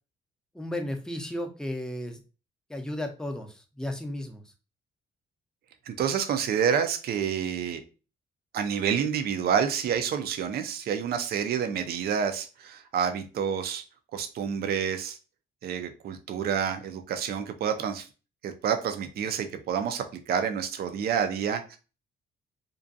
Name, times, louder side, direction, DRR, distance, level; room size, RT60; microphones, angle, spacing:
voice 1, 0.5-2.2 2.7-4.4, left 1 dB, 5° left, 4 dB, 0.5 m, -34 dB
voice 2, 5.9-7.8 8.5-13.8 14.1-15.2 15.6-18.1 18.4-21.8, right 7 dB, 50° right, 8 dB, 0.4 m, -28 dB
2.5 x 2.2 x 2.5 m, 0.34 s
cardioid pair, 90°, 20 cm